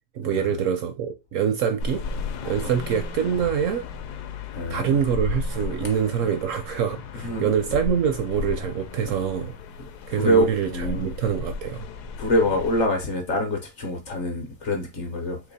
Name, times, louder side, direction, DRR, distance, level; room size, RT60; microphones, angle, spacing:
voice 1, 0.1-2.0 2.5-3.8 4.7-9.5 10.1-11.9, right 8 dB, 70° right, 0.8 m, -25 dB
sound 1, 1.8-12.9, left 4 dB, 80° left, 1.1 m, -34 dB
voice 2, 4.5-5.0 7.2-7.5 10.1-11.1 12.2-15.4, equal, 55° left, 0.9 m, -25 dB
3.0 x 2.9 x 4.0 m
omnidirectional pair, 1.7 m